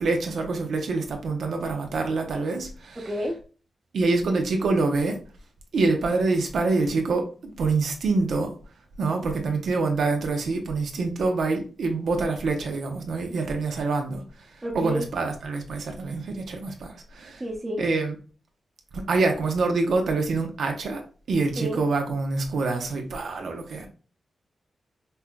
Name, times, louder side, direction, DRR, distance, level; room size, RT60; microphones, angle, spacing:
voice 1, 0.0-3.2 3.9-5.2 5.7-8.5 9.0-14.2 14.7-17.4 17.8-18.2 18.9-21.0 21.3-23.9, right 3 dB, 80° right, 0.7 m, -26 dB
voice 2, 3.0-3.4 14.6-15.0 17.4-17.8 21.6-21.8, equal, 25° right, 0.8 m, -30 dB
5.4 x 2.2 x 2.2 m
cardioid pair, 65°, 0 cm